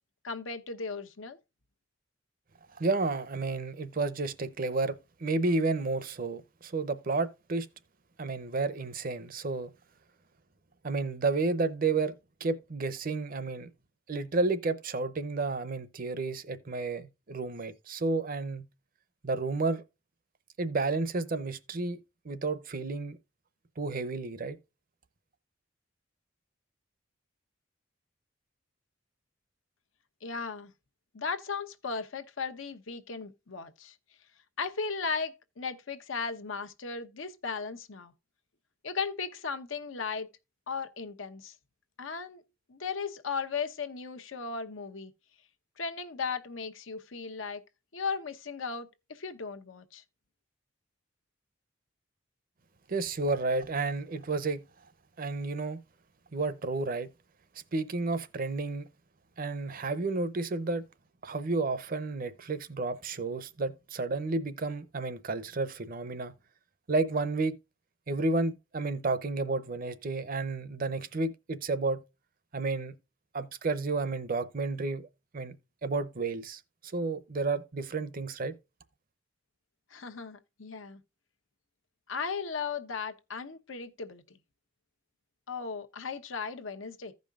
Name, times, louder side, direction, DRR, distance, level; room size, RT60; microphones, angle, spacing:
voice 1, 0.2-1.4 30.2-30.7 31.1-34.0 34.6-38.1 38.8-40.3 40.7-41.5 42.0-42.4 42.7-45.1 45.8-47.6 47.9-50.0 79.9-81.0 82.1-84.4 85.5-87.1, left 5 dB, 85° left, 1.0 m, -36 dB
voice 2, 2.7-7.7 8.2-9.7 10.8-12.1 12.4-13.7 14.1-18.7 19.2-19.8 20.6-22.0 22.2-23.2 23.8-24.6 52.9-54.6 55.2-55.8 56.3-57.1 57.7-58.9 59.4-60.8 61.2-66.3 66.9-67.6 68.1-72.0 72.5-72.9 73.3-75.1 75.3-75.5 75.8-78.5, right 3 dB, 45° right, 0.7 m, -31 dB
15.5 x 5.3 x 2.4 m
head